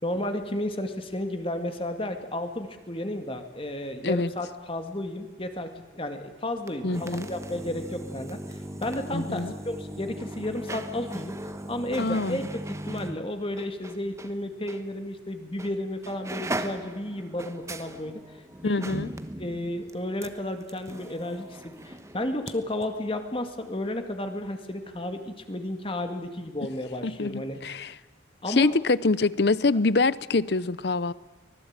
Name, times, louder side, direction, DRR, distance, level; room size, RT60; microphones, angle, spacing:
voice 1, 0.0-11.4 11.7-18.2 18.6-18.8 19.4-27.6 28.4-28.8, left 1 dB, 30° left, 6 dB, 2.1 m, -33 dB
sound 1, 6.6-14.3 14.7-14.8 15.6-22.5 22.8-22.9, right 1 dB, 15° right, 1.1 m, -38 dB
voice 2, 6.8-7.3 9.1-9.5 12.0-12.4 18.6-19.1 27.0-27.9 28.5-31.1, left 3 dB, 60° left, 19 dB, 0.7 m, -25 dB
24.5 x 19.5 x 8.9 m, 1.2 s
head